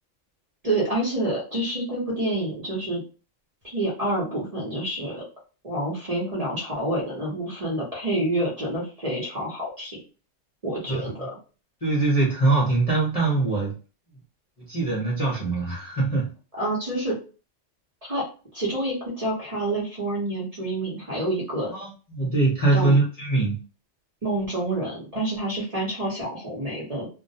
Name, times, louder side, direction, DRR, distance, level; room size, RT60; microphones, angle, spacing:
voice 1, 0.6-3.0 3.6-5.2 5.6-10.0 10.6-11.3 16.6-17.2 18.1-18.2 18.5-21.7 22.7-22.9 24.2-27.1, right 1 dB, 35° right, -5 dB, 0.8 m, -28 dB
voice 2, 11.8-13.7 14.6-16.3 21.7-23.6, right 3 dB, 35° left, -5 dB, 0.7 m, -23 dB
2.3 x 2.1 x 2.7 m, 0.35 s
omnidirectional pair, 1.3 m